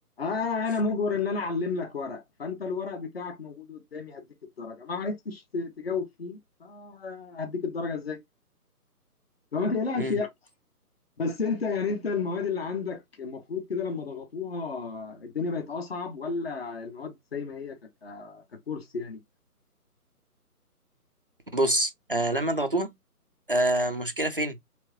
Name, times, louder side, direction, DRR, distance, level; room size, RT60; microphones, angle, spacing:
voice 1, 0.2-4.2 4.6-8.2 9.5-10.3 11.2-19.2, left 4 dB, 40° left, 1.1 m, -32 dB
voice 2, 21.5-22.9 23.5-24.6, right 1 dB, 40° right, 0.4 m, -26 dB
4.6 x 3.5 x 2.9 m
figure-of-eight pair, 150°, 46 cm